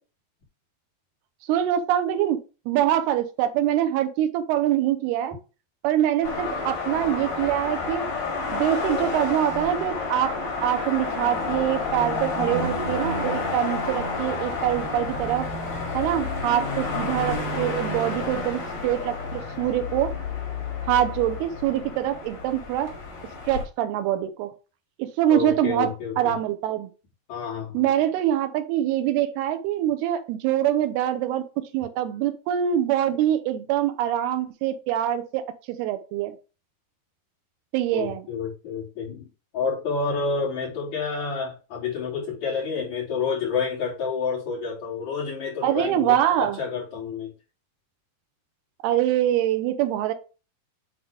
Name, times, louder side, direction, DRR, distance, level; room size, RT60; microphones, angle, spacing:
voice 1, 1.5-2.4 2.7-5.4 5.8-8.1 8.5-10.4 10.6-15.5 15.9-20.1 20.8-22.9 23.5-24.5 25.0-26.9 27.7-36.3 37.7-38.3 45.6-46.6 48.8-50.1, right 11 dB, 90° right, 2.8 m, -24 dB
sound 1, 6.2-23.6, left 3 dB, 65° left, 5.0 m, -30 dB
voice 2, 25.3-26.3 27.3-27.8 37.9-47.3, left 5 dB, 50° left, 4.0 m, -29 dB
9.9 x 3.7 x 3.5 m
omnidirectional pair, 4.4 m